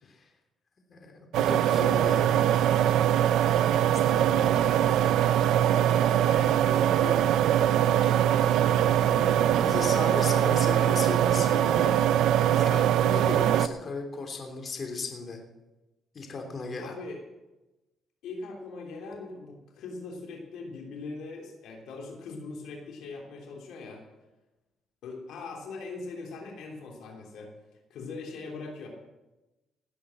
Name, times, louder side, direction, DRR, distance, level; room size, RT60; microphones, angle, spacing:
voice 1, 0.9-2.9 9.6-12.0 12.5-15.4 16.1-17.0, left 3 dB, 45° left, 3 dB, 3.3 m, -36 dB
sound 1, 1.3-13.7, right 11 dB, 85° right, 0.7 m, -22 dB
voice 2, 3.7-9.9 16.8-17.2 18.2-24.0 25.0-27.5 27.9-28.9, left 3 dB, 85° left, 0 dB, 3.2 m, -41 dB
18.0 x 8.6 x 7.6 m, 1.1 s
cardioid pair, 90°, 0 cm